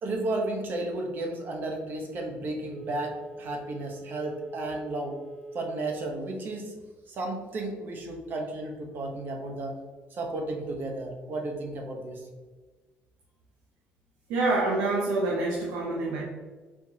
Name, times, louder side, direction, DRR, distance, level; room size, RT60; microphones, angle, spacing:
voice 1, 0.0-5.2 5.5-6.7 7.1-9.8 10.1-12.3, right 2 dB, 50° right, 2 dB, 1.0 m, -33 dB
Telephone, 2.7-5.8 6.2-6.3, right 2 dB, 15° right, 0.9 m, -43 dB
voice 2, 14.3-16.2, right 2 dB, 85° right, -2 dB, 0.8 m, -26 dB
4.5 x 3.5 x 2.8 m, 1.4 s
cardioid pair, 105°, 4 cm